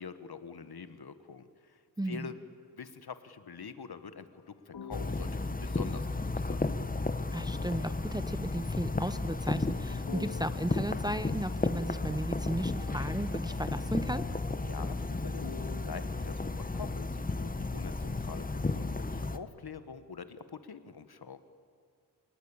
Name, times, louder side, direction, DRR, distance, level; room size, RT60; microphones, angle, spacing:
voice 1, 0.0-2.3 2.8-6.7 14.6-21.4, left 6 dB, 60° left, 11 dB, 1.3 m, -45 dB
voice 2, 2.0-2.3 7.3-14.2, right 1 dB, 10° right, 12 dB, 0.7 m, -35 dB
sound 1, 4.7-7.0 10.1-12.3 12.8-17.0, left 6 dB, 85° left, 2.2 m, -50 dB
sound 2, 4.9-19.4, left 3 dB, 20° left, 0.8 m, -33 dB
28.0 x 19.0 x 8.7 m, 2.3 s
wide cardioid pair, 120°, 42 cm